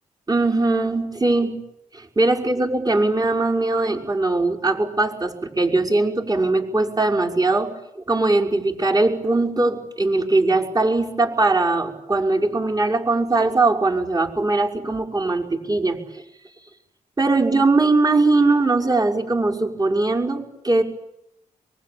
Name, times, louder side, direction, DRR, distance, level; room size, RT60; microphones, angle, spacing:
voice 1, 0.3-1.6 1.9-7.7 8.1-16.0 17.2-20.8, right 2 dB, 30° right, 0 dB, 6.1 m, -20 dB
24.0 x 23.5 x 8.8 m, 0.84 s
cardioid pair, 70°, 14 cm